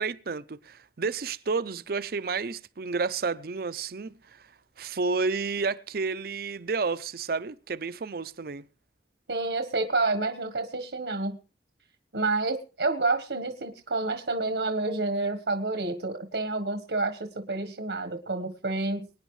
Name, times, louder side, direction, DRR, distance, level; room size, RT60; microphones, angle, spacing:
voice 1, 0.0-4.5 4.8-8.6, right 4 dB, 55° right, 0.6 m, -31 dB
voice 2, 9.3-11.4 12.1-19.1, right 3 dB, 80° right, 1.3 m, -29 dB
24.0 x 9.8 x 3.2 m
head